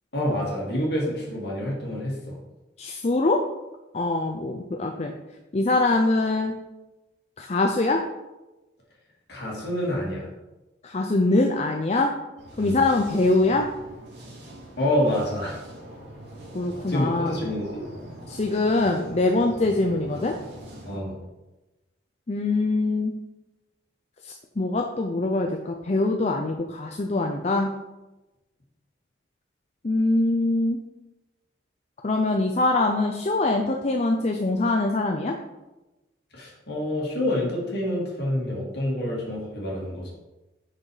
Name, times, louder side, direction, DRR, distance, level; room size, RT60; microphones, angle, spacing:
voice 1, 0.1-2.3 9.3-10.3 12.6-12.8 14.8-15.6 16.9-17.8 20.9-21.1 36.3-40.1, left 1 dB, 55° left, -4 dB, 2.5 m, -27 dB
voice 2, 2.8-3.4 3.9-5.1 5.5-6.5 7.4-8.0 10.8-12.1 12.6-13.7 16.5-17.4 18.3-20.3 22.3-23.1 24.2-27.7 29.8-30.8 32.0-35.3, left 2 dB, 35° left, 2 dB, 0.5 m, -23 dB
sound 1, 12.4-21.0, right 1 dB, 60° right, 2.2 m, -42 dB
6.3 x 6.3 x 4.9 m, 1.1 s
head